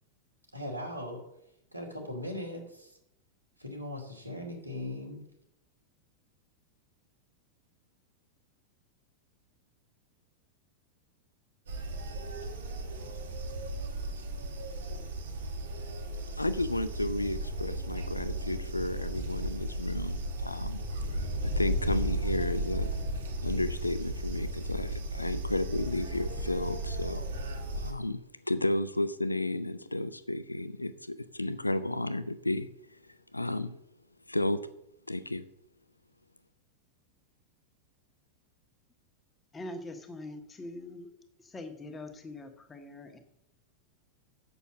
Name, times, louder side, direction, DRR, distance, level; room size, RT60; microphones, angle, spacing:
voice 1, 0.5-1.2 1.7-3.0 3.6-5.3, left 1 dB, 90° right, 1 dB, 2.5 m, -39 dB
sound 1, 11.7-27.9, right 1 dB, 65° right, 1.8 m, -35 dB
voice 2, 16.4-20.8 21.4-23.0 23.4-32.7 33.3-33.8 34.3-34.7 35.1-35.4, left 1 dB, 85° left, 14 dB, 0.5 m, -33 dB
voice 3, 39.5-41.1 41.4-43.2, left 2 dB, 15° left, 5 dB, 1.5 m, -43 dB
8.2 x 7.0 x 7.4 m, 0.82 s
figure-of-eight pair, 90°, 0 cm